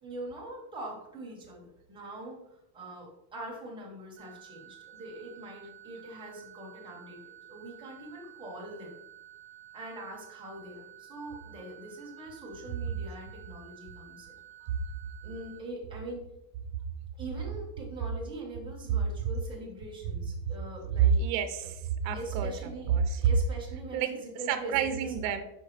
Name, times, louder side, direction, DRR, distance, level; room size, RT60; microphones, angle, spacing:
voice 1, 0.0-2.4 2.7-8.9 9.7-14.4 15.2-16.2 17.2-21.2 22.1-25.3, right 1 dB, 10° right, -4 dB, 1.4 m, -43 dB
sound 1, 4.2-15.6, right 12 dB, 25° right, 0.6 m, -52 dB
voice 2, 21.2-22.5 22.9-23.2 23.9-24.1 24.5-25.4, right 7 dB, 80° right, 8 dB, 0.8 m, -30 dB
5.7 x 5.2 x 3.3 m, 0.84 s
cardioid pair, 170°, 49 cm